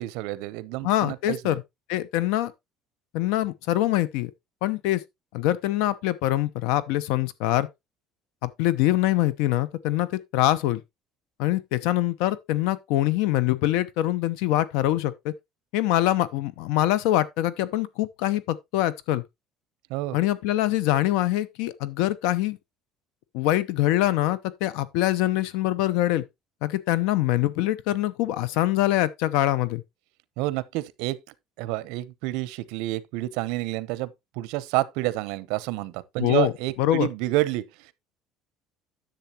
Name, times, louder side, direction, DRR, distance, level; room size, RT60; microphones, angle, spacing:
voice 1, 0.0-1.6 19.9-20.2 30.4-31.2 31.6-34.1 34.4-37.9, right 18 dB, 75° right, 0.7 m, -29 dB
voice 2, 0.8-1.6 1.9-2.5 3.1-4.3 4.6-5.0 5.3-7.7 8.4-10.8 11.4-15.3 15.7-19.2 20.1-22.6 23.3-26.2 26.6-29.8 36.2-36.5 36.8-37.1, left 14 dB, 75° left, 0.7 m, -24 dB
10.5 x 7.1 x 2.9 m
cardioid pair, 175°, 0 cm